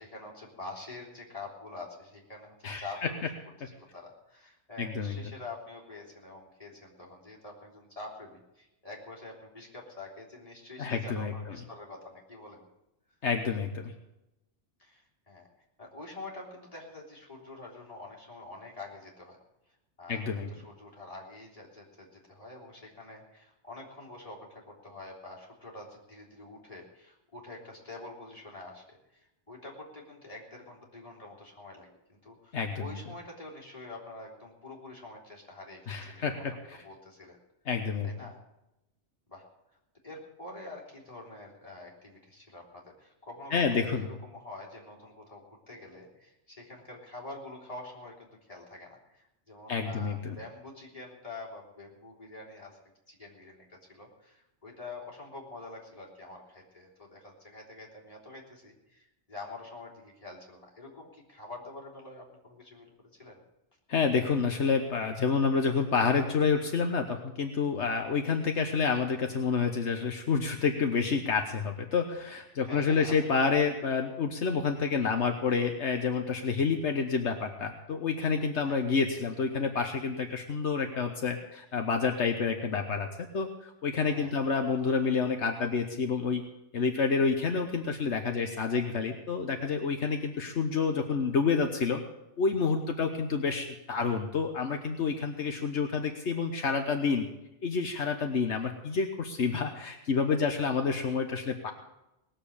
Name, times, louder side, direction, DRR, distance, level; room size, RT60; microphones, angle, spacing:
voice 1, 0.0-3.3 3.6-12.7 14.8-15.5 15.8-19.4 20.0-37.4 38.0-38.4 39.3-39.5 40.0-52.8 53.1-63.4 72.6-73.2 78.6-78.8 84.1-84.4 93.0-93.1 100.4-100.5, left 2 dB, 30° left, -3 dB, 3.6 m, -46 dB
voice 2, 2.6-3.1 4.8-5.2 10.8-11.6 13.2-13.9 20.1-20.5 32.5-32.9 35.9-36.8 37.7-38.1 43.5-44.1 49.7-50.4 63.9-83.1 83.3-86.4 86.7-92.0 92.4-97.3 97.6-101.7, left 5 dB, 75° left, 4 dB, 1.4 m, -29 dB
19.0 x 7.4 x 8.6 m, 0.92 s
omnidirectional pair, 1.2 m